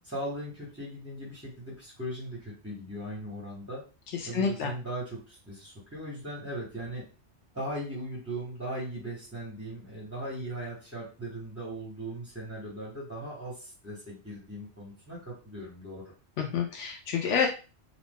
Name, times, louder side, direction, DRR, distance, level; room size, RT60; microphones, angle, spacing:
voice 1, 0.0-3.8 4.3-7.1 7.5-16.0, right 1 dB, 15° right, -5 dB, 0.9 m, -38 dB
voice 2, 4.1-4.7 16.4-17.5, left 6 dB, 90° left, 2 dB, 1.0 m, -28 dB
2.9 x 2.5 x 3.5 m, 0.34 s
omnidirectional pair, 1.2 m